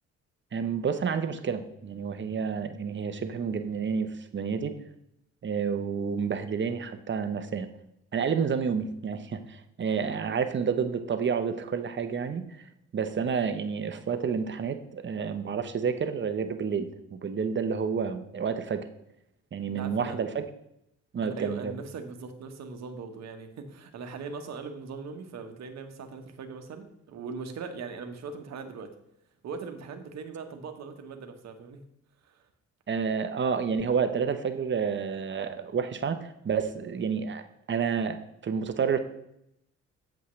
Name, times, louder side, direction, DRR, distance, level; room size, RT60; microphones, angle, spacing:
voice 1, 0.5-4.7 5.4-7.7 8.1-12.6 12.9-18.8 19.5-20.4 21.1-21.8 32.9-37.4 37.7-38.2 38.4-39.0, right 6 dB, 40° right, 9 dB, 0.8 m, -29 dB
voice 2, 19.8-20.2 21.2-28.9 29.4-31.8 32.3-32.4, right 5 dB, 60° right, 5 dB, 1.2 m, -40 dB
8.3 x 7.4 x 3.2 m, 0.80 s
cardioid pair, 90°, 30 cm